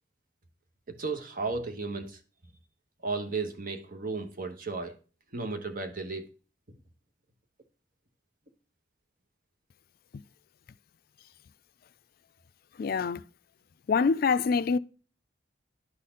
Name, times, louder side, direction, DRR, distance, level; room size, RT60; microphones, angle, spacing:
voice 1, 0.9-2.2 3.0-5.0 5.3-6.3, right 3 dB, 50° right, 1.1 m, -34 dB
voice 2, 12.8-13.2 13.9-14.8, left 5 dB, 55° left, 0.4 m, -25 dB
11.0 x 4.2 x 3.8 m
head